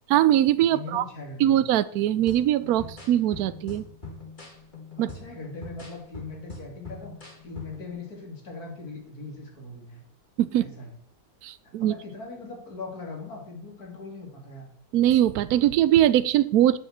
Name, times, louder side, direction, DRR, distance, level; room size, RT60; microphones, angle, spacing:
voice 1, 0.1-1.0 1.4-3.8 5.0-5.1 10.4-10.7 11.4-11.9 14.9-16.8, right 12 dB, 80° right, 14 dB, 1.1 m, -21 dB
voice 2, 0.7-1.6 5.0-10.0 10.6-11.0 11.6-14.7, left 3 dB, 85° left, 1 dB, 3.5 m, -40 dB
sound 1, 2.3-7.9, left 3 dB, 30° left, 2.4 m, -42 dB
9.1 x 6.9 x 8.0 m, 0.66 s
omnidirectional pair, 1.6 m